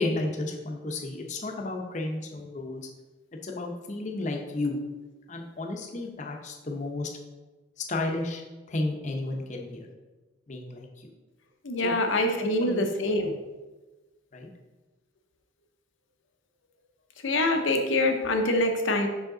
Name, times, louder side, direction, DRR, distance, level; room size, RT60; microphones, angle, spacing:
voice 1, 0.0-2.8 3.4-4.8 5.3-7.1 7.9-9.8 10.5-11.1 11.8-11.9 12.4-12.8 13.2-13.4 14.3-14.5, left 2 dB, 40° left, 2 dB, 0.7 m, -32 dB
voice 2, 11.6-13.3 17.2-19.1, left 1 dB, 70° left, 5 dB, 0.8 m, -25 dB
5.7 x 5.0 x 3.8 m, 1.2 s
head